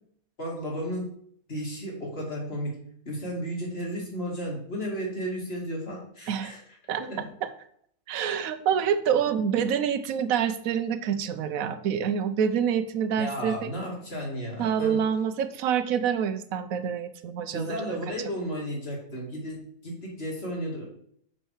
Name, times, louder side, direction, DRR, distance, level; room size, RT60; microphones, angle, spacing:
voice 1, 0.4-1.1 1.5-2.8 3.1-6.6 7.0-7.3 13.2-15.0 17.5-20.8, equal, 40° left, -2 dB, 2.6 m, -33 dB
voice 2, 8.1-13.7 14.6-17.9, right 8 dB, 70° right, 11 dB, 1.1 m, -27 dB
6.6 x 6.1 x 4.8 m, 0.64 s
omnidirectional pair, 1.6 m